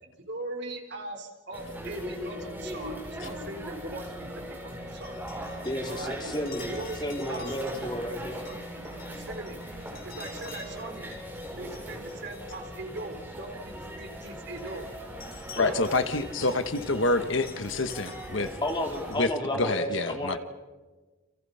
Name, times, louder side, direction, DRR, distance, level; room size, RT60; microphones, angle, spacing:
voice 1, 0.0-5.2 5.8-6.2 6.7-7.7 8.1-8.2 8.4-8.6 9.0-9.6 10.0-11.1 11.5-14.9 15.5-15.9 16.4-16.6, right 2 dB, 55° right, 4 dB, 4.0 m, -40 dB
sound 1, 1.5-19.1, equal, 10° right, 6.7 m, -40 dB
sound 2, 4.9-13.7 14.2-19.2, left 5 dB, 45° left, 7.1 m, -50 dB
voice 2, 5.6-6.7 7.0-8.4 15.5-15.7 18.6-20.4, left 1 dB, 20° left, 2 dB, 3.2 m, -32 dB
voice 3, 15.6-18.5 19.2-20.4, left 2 dB, 65° left, 10 dB, 1.3 m, -27 dB
30.0 x 28.0 x 5.7 m, 1.2 s
head